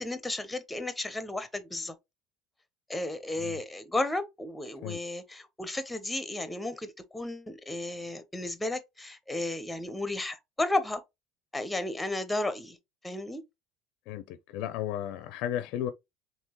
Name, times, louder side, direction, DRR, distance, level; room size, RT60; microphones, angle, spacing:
voice 1, 0.0-1.9 2.9-11.0 11.5-12.8 13.0-13.4, left 2 dB, 5° left, 0.7 m, -33 dB
voice 2, 14.1-15.9, left 11 dB, 70° left, 0.4 m, -34 dB
3.6 x 2.8 x 3.0 m
supercardioid pair, 105°, 0 cm